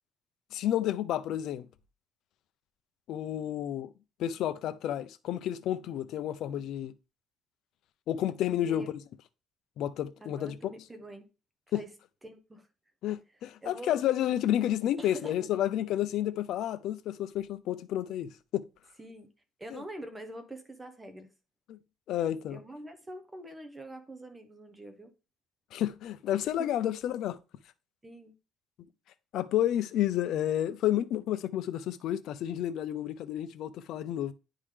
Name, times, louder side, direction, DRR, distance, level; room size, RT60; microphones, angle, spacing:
voice 1, 0.5-1.7 3.1-3.9 4.2-6.9 8.1-8.9 9.8-10.5 11.7-11.8 13.0-18.7 19.7-19.8 21.7-21.8 22.1-22.6 25.7-27.4 29.3-34.3, left 11 dB, 60° left, 0.5 m, -30 dB
voice 2, 10.2-11.3 11.7-11.9 12.2-12.7 13.6-13.9 15.0-15.6 19.0-19.3 19.6-21.3 22.5-25.1 26.6-26.7 28.0-28.3, right 1 dB, 10° right, 0.8 m, -45 dB
9.8 x 3.7 x 3.3 m
cardioid pair, 140°, 0 cm